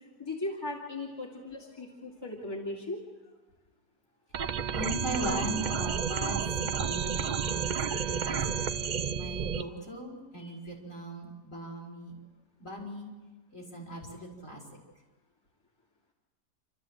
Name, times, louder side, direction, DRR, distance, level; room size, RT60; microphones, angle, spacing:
voice 1, 0.2-3.0 10.4-10.6, left 2 dB, 15° left, -2 dB, 2.5 m, -38 dB
sound 1, 4.3-9.6, right 7 dB, 80° right, 0.4 m, -31 dB
voice 2, 4.7-12.1 12.6-13.1 13.5-14.6, equal, 50° left, -2 dB, 5.2 m, -39 dB
28.0 x 13.5 x 7.9 m, 1.2 s
omnidirectional pair, 1.8 m